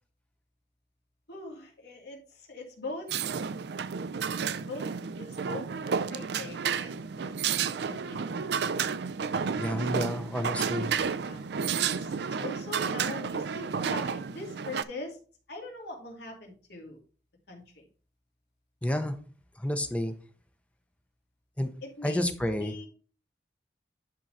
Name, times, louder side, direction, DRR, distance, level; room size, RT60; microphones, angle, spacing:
voice 1, 1.3-3.5 4.6-4.9 5.2-7.4 7.9-8.5 8.9-9.3 9.7-9.9 10.8-11.7 11.9-15.2 15.5-17.0 17.5-17.9 21.8-22.2 22.6-22.9, left 2 dB, 70° left, 0 dB, 2.5 m, -42 dB
sound 1, 3.1-14.8, right 6 dB, 70° right, 0.4 m, -31 dB
voice 2, 9.6-10.9 18.8-19.2 19.6-20.1 21.6-21.7 22.0-22.7, left 1 dB, 5° left, 8 dB, 0.7 m, -30 dB
10.5 x 3.8 x 4.2 m, 0.39 s
head